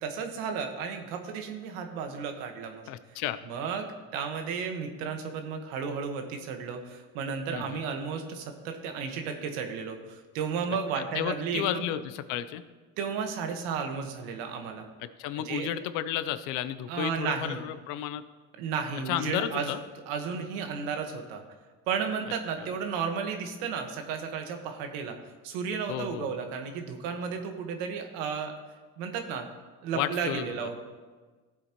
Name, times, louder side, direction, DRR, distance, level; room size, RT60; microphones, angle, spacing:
voice 1, 0.0-11.8 13.0-14.9 15.4-15.7 16.9-17.6 18.6-19.7 20.1-21.4 21.9-25.2 25.4-28.5 29.0-29.5 29.8-30.8, right 6 dB, 80° right, 5 dB, 1.5 m, -33 dB
voice 2, 2.9-3.4 7.5-7.8 11.0-12.6 15.2-18.2 19.1-19.8 25.9-26.3 29.9-30.5, left 11 dB, 70° left, 13 dB, 0.7 m, -32 dB
15.5 x 8.2 x 3.0 m, 1.4 s
cardioid pair, 125°, 33 cm